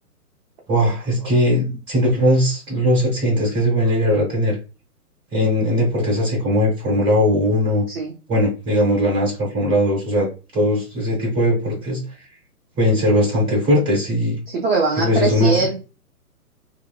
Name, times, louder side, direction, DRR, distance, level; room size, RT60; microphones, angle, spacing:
voice 1, 0.7-4.6 5.3-7.8 8.3-12.0 12.8-14.4 15.0-15.7, equal, 10° right, -3 dB, 1.2 m, -19 dB
voice 2, 14.5-15.8, right 4 dB, 40° right, -3 dB, 0.6 m, -21 dB
3.2 x 2.0 x 2.3 m, 0.32 s
figure-of-eight pair, 125°, 46 cm